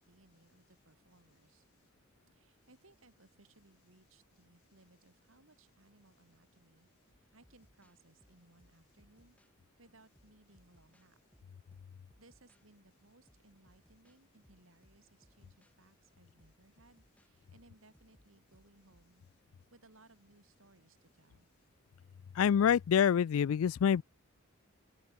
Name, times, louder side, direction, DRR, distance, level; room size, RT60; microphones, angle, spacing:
voice 1, 0.0-1.6 2.3-9.4 9.8-11.2 12.2-19.2 19.7-21.5, right 2 dB, 70° right, 4.3 m, -65 dB
sound 1, 7.1-9.6 10.2-12.6 13.1-15.7 16.4-19.1, equal, 5° left, 5.3 m, -68 dB
voice 2, 22.4-24.0, left 8 dB, 80° left, 0.3 m, -26 dB
open air
head